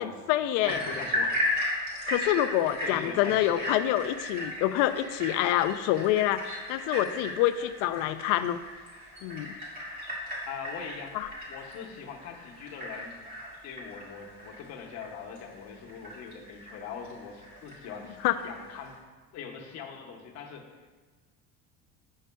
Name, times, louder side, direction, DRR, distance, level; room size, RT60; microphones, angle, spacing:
voice 1, 0.0-0.8 2.1-6.4 6.7-8.6 9.2-9.5 11.1-11.3 18.2-18.4, left 13 dB, 75° left, 12 dB, 0.4 m, -26 dB
voice 2, 0.6-1.4 2.8-3.7 10.5-11.2 11.5-13.1 13.6-18.2 18.4-19.0 19.3-20.7, left 6 dB, 55° left, 1 dB, 1.0 m, -41 dB
sound 1, 0.6-18.9, left 1 dB, 30° right, 2.1 m, -36 dB
9.2 x 6.4 x 2.2 m, 1.4 s
cardioid pair, 150°, 31 cm